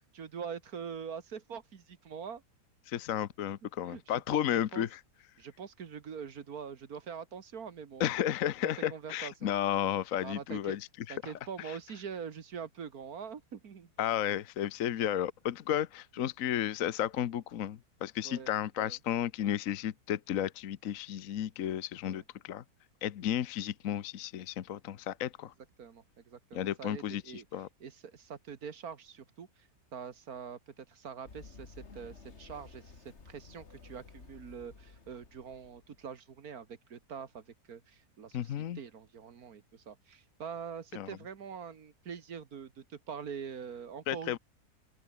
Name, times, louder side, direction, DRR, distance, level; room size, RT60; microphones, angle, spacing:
voice 1, 0.1-2.4 3.9-4.9 5.4-8.1 8.6-9.5 10.2-10.8 11.1-13.9 18.2-18.5 18.8-19.0 22.0-22.2 25.8-27.5 27.8-32.9 33.3-44.4, right 7 dB, 65° right, 1.9 m, -44 dB
voice 2, 2.9-5.0 8.0-11.3 11.6-11.8 14.0-22.6 23.0-25.5 26.5-27.7 38.3-38.8 40.9-41.1 44.1-44.4, left 11 dB, 60° left, 1.2 m, -33 dB
Run, 31.3-36.0, left 4 dB, 45° left, 2.4 m, -53 dB
open air
omnidirectional pair, 1.7 m